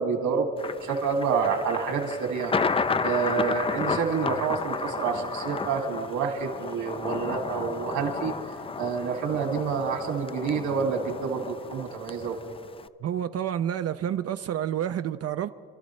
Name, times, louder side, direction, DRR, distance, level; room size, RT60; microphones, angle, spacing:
voice 1, 0.0-2.6 3.0-8.3 8.8-12.4, right 5 dB, 80° right, 2.3 m, -28 dB
Thunder, 0.6-12.9, left 4 dB, 20° left, 0.4 m, -32 dB
voice 2, 13.0-15.5, right 10 dB, 55° right, 0.5 m, -29 dB
27.5 x 12.5 x 3.2 m
cardioid pair, 90°, 30 cm